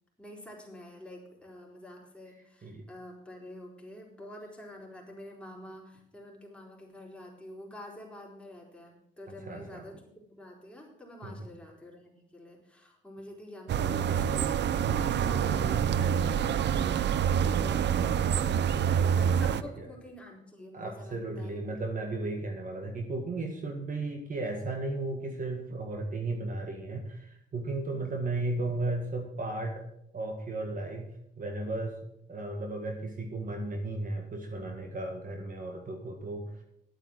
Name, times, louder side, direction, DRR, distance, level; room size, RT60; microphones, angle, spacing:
voice 1, 0.2-14.5 14.8-17.0 17.5-21.8 27.8-28.2, left 1 dB, 5° left, -2 dB, 4.4 m, -48 dB
voice 2, 9.4-9.8 11.2-11.5 19.8-19.9 20.7-29.9 30.1-31.1 31.4-32.0 32.3-36.6, right 2 dB, 45° right, 4 dB, 1.9 m, -35 dB
sound 1, 13.7-19.6, right 8 dB, 60° right, 0.7 m, -26 dB
11.5 x 8.8 x 6.4 m, 0.77 s
cardioid pair, 90°, 20 cm